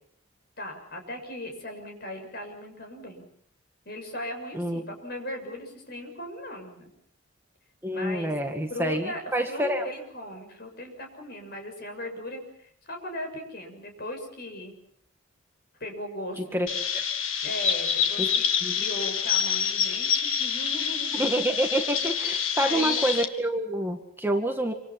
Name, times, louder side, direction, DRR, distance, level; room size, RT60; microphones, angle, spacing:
voice 1, 0.6-3.3 3.9-6.9 7.9-8.3 8.7-14.8 15.8-16.8 17.4-18.5 18.8-21.2 22.6-23.0, left 1 dB, 50° left, 4 dB, 7.0 m, -38 dB
voice 2, 7.8-9.9 16.4-16.7 16.9-17.0 18.2-18.3 18.6-18.8 21.1-24.7, right 1 dB, 10° right, 3 dB, 1.9 m, -27 dB
Chirp tweet, 16.7-23.2, left 7 dB, 80° left, 2.0 m, -27 dB
27.5 x 26.0 x 6.0 m, 0.64 s
head